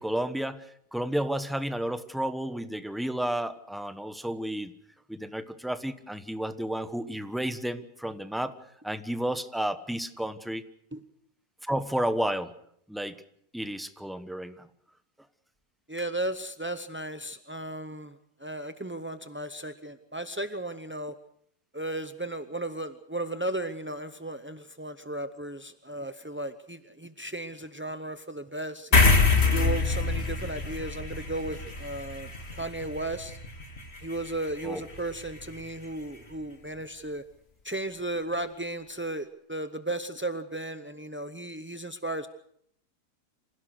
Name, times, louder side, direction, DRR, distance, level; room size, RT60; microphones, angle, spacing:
voice 1, 0.0-4.7 5.1-8.6 8.8-10.6 11.6-12.5 12.9-13.2 13.5-14.7 34.6-34.8, right 1 dB, ahead, 10 dB, 0.8 m, -32 dB
voice 2, 15.9-18.1 18.4-21.1 21.7-28.9 29.5-33.4 34.0-37.2 37.6-42.3, right 1 dB, 15° right, 9 dB, 0.3 m, -35 dB
sound 1, 28.9-35.7, left 3 dB, 40° left, 2.2 m, -26 dB
26.5 x 16.5 x 6.5 m, 0.69 s
omnidirectional pair, 1.7 m